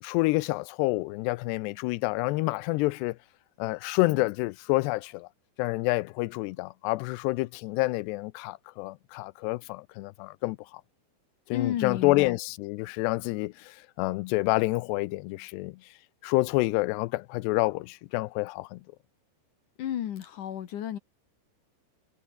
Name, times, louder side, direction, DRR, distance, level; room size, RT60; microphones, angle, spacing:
voice 1, 0.0-3.2 3.6-5.3 5.6-10.8 11.5-15.8 16.2-18.8, left 21 dB, 90° left, 2.8 m, -28 dB
voice 2, 11.5-12.4 19.8-21.0, left 10 dB, 60° left, 2.5 m, -32 dB
omnidirectional pair, 4.8 m